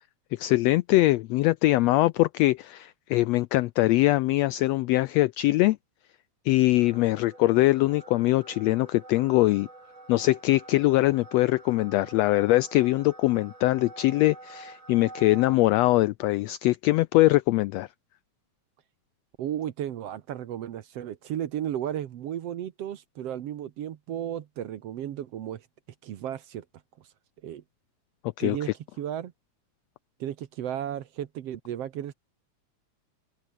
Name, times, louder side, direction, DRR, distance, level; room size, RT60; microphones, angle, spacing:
voice 1, 0.3-5.8 6.4-9.7 10.1-17.9 28.4-28.6, left 18 dB, 85° left, 1.5 m, -22 dB
sound 1, 6.8-15.6, right 2 dB, 40° right, 8.0 m, -47 dB
voice 2, 19.4-25.7 26.0-26.7 27.4-27.6 28.4-28.7 29.0-29.3 30.2-32.1, right 10 dB, 60° right, 1.9 m, -34 dB
open air
omnidirectional pair, 3.5 m